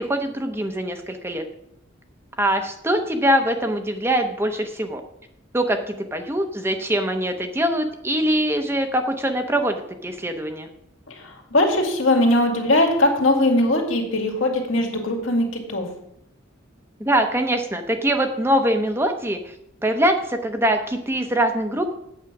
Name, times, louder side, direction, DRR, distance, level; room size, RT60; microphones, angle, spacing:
voice 1, 0.0-1.4 2.4-5.0 5.5-10.7 17.0-19.5 19.8-21.9, right 1 dB, 10° right, 5 dB, 0.7 m, -23 dB
voice 2, 11.1-15.9, left 1 dB, 75° left, 2 dB, 2.4 m, -20 dB
8.6 x 8.2 x 6.0 m, 0.78 s
head